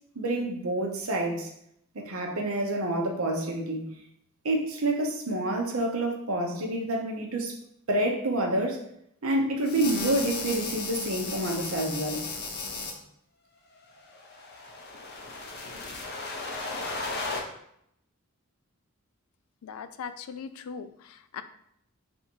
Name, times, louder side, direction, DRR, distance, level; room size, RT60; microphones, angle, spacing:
voice 1, 0.2-1.5 1.9-3.9 4.4-7.5 7.9-8.8 9.2-12.3, right 1 dB, 75° right, 2 dB, 0.8 m, -28 dB
sound 1, 9.6-12.9 14.1-17.4, left 3 dB, 50° left, 0.7 m, -35 dB
voice 2, 19.6-21.4, left 6 dB, 80° left, 12 dB, 0.3 m, -40 dB
3.5 x 2.7 x 4.4 m, 0.73 s
head